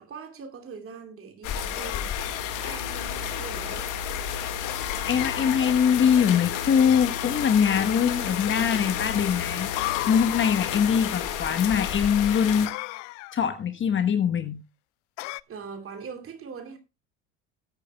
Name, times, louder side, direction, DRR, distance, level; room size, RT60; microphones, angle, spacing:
voice 1, 0.0-2.1 2.5-3.9 15.5-16.8, right 5 dB, 40° right, 2.7 m, -41 dB
sound 1, 1.4-12.7, left 9 dB, 60° left, 1.8 m, -31 dB
sound 2, 1.8-2.8 4.7-5.6 6.8-7.6 8.5-9.1 9.8-10.7 12.7-13.4 15.2-15.4, left 21 dB, 85° left, 0.5 m, -36 dB
voice 2, 5.1-9.7 10.1-12.7 13.3-14.6, left 7 dB, 35° left, 1.2 m, -23 dB
19.0 x 8.7 x 2.2 m
supercardioid pair, 95°, 36 cm